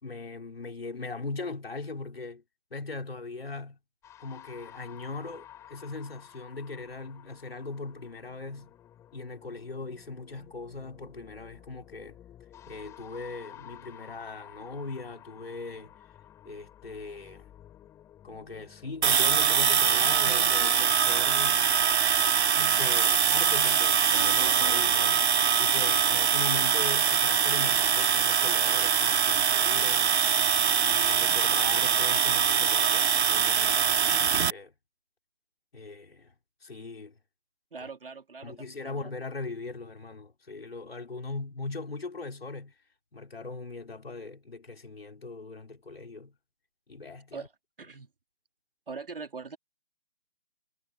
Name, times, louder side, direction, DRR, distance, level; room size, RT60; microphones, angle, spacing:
voice 1, 0.0-2.4 2.7-3.8 4.2-8.7 9.1-12.2 12.7-15.9 16.4-17.5 18.2-21.7 22.5-25.3 25.6-30.2 30.8-34.7 35.7-36.3 36.6-37.1 37.8-37.9 38.4-42.7 43.1-46.3 46.9-47.5, left 3 dB, 60° left, 4.8 m, -40 dB
sound 1, 4.0-20.3, left 11 dB, 10° left, 5.8 m, -52 dB
sound 2, 19.0-34.5, right 7 dB, 75° right, 0.5 m, -23 dB
sound 3, 19.5-19.6 20.3-21.1 24.1-24.9, right 6 dB, 30° right, 1.1 m, -41 dB
voice 2, 37.7-39.1 47.3-47.5 47.8-48.1 48.9-49.6, right 5 dB, 55° right, 3.2 m, -42 dB
figure-of-eight pair, 150°, 33 cm